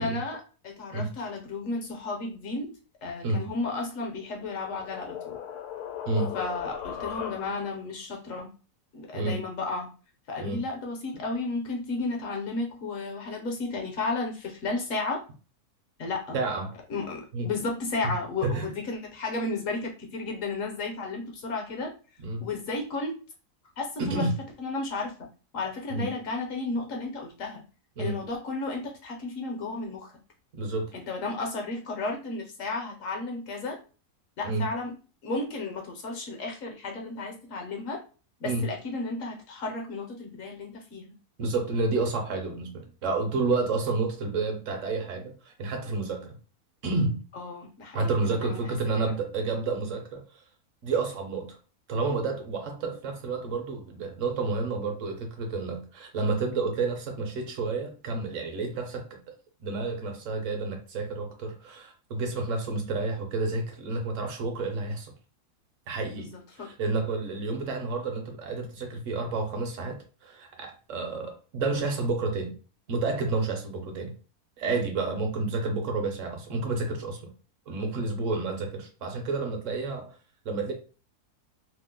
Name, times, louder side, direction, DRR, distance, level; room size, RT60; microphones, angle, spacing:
voice 1, 0.0-2.8 3.0-5.4 6.3-8.5 8.9-9.9 10.3-15.2 16.0-16.4 16.9-21.9 22.4-23.2 23.8-24.3 24.6-25.3 25.5-27.6 28.0-30.1 30.9-33.8 34.4-35.0 35.2-38.0 38.4-41.1 47.3-49.2 66.2-66.7, left 3 dB, 65° left, 1.0 m, -33 dB
sound 1, 4.0-7.8, left 9 dB, 80° left, 1.1 m, -38 dB
voice 2, 16.3-16.7 17.3-17.5 18.0-18.1 18.4-18.7 22.2-22.5 24.0-24.3 25.9-26.1 28.0-28.2 30.5-30.9 34.4-34.6 38.4-38.6 41.4-46.4 46.8-47.2 47.9-50.2 50.8-51.6 51.9-59.1 59.6-65.1 65.9-66.3 66.6-70.0 70.2-72.5 72.9-74.1 74.6-77.2 77.7-80.1 80.4-80.7, right 3 dB, 60° right, 1.0 m, -30 dB
3.0 x 2.0 x 3.5 m
omnidirectional pair, 1.7 m